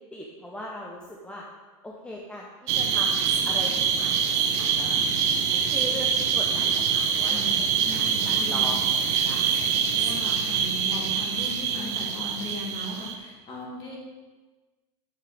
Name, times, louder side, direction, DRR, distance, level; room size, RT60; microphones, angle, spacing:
voice 1, 0.0-1.4 1.8-2.5 2.7-5.0 5.5-7.5 7.9-10.3, left 1 dB, 5° left, -2 dB, 0.8 m, -40 dB
sound 1, 2.7-13.2, right 7 dB, 65° right, 1.0 m, -25 dB
voice 2, 7.2-8.8 9.1-9.3 9.9-14.0, left 1 dB, 35° left, -3 dB, 2.9 m, -38 dB
10.5 x 7.3 x 3.5 m, 1.3 s
supercardioid pair, 145°, 16 cm